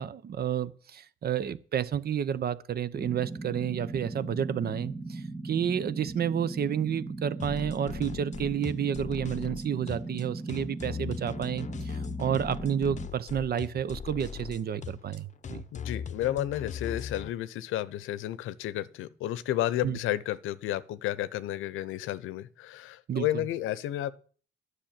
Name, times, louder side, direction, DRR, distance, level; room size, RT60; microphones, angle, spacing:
voice 1, 0.0-15.6 19.8-20.0 23.1-23.5, right 9 dB, 50° right, 0.8 m, -30 dB
sound 1, 2.9-13.1, right 3 dB, 5° right, 1.0 m, -38 dB
sound 2, 7.4-17.3, left 7 dB, 35° left, 0.8 m, -39 dB
voice 2, 15.7-24.1, left 13 dB, 90° left, 0.7 m, -32 dB
10.0 x 6.5 x 8.8 m
cardioid pair, 90°, 20 cm